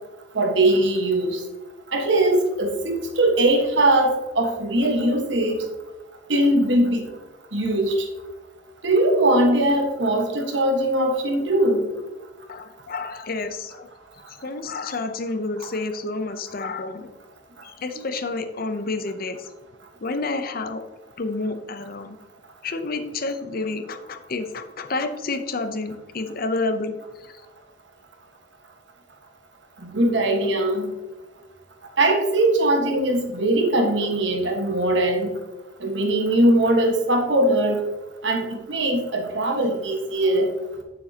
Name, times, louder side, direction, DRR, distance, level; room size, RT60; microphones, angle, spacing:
voice 1, 0.3-1.4 1.9-5.6 6.3-7.0 7.5-7.9 8.8-11.8 29.8-30.9 32.0-35.3 35.8-37.8 38.2-40.5, right 1 dB, 70° right, 2 dB, 1.5 m, -20 dB
voice 2, 12.5-13.9 14.3-17.1 17.6-19.5 20.0-20.8 21.2-22.2 22.6-27.4, left 3 dB, 50° left, 9 dB, 0.7 m, -29 dB
9.1 x 7.4 x 2.9 m, 1.1 s
head